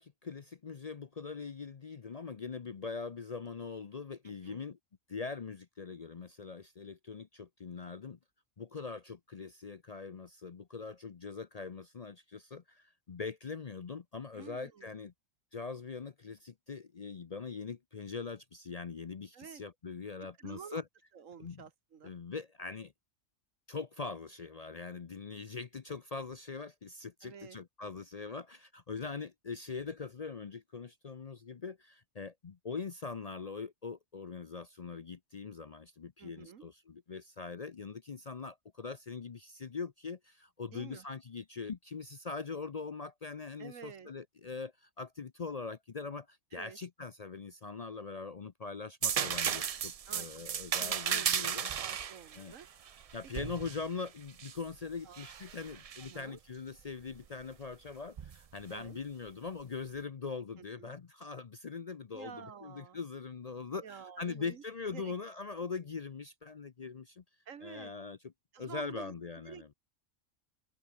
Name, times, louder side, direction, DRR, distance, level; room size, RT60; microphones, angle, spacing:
voice 1, 0.0-4.8 5.1-8.2 8.6-15.1 15.5-20.8 21.4-21.6 22.0-22.9 23.7-51.7 52.4-52.5 53.1-67.2 67.6-68.3 68.6-69.7, left 5 dB, 40° left, 0.6 m, -42 dB
voice 2, 4.2-4.7 14.3-14.9 19.3-19.6 20.4-20.8 21.1-22.1 27.2-27.6 36.2-36.6 40.7-41.0 43.6-44.1 46.5-46.8 50.1-50.4 50.8-51.5 51.8-52.7 53.5-53.6 55.0-55.3 56.0-56.4 58.7-59.0 60.6-60.9 62.1-63.0 63.8-64.6 64.9-65.1 67.5-67.9 68.5-69.1 69.4-69.7, right 7 dB, 80° right, 1.7 m, -50 dB
sound 1, 49.0-54.6 55.1-56.1 58.2-58.4, right 8 dB, 60° right, 0.3 m, -35 dB
open air
omnidirectional pair, 1.3 m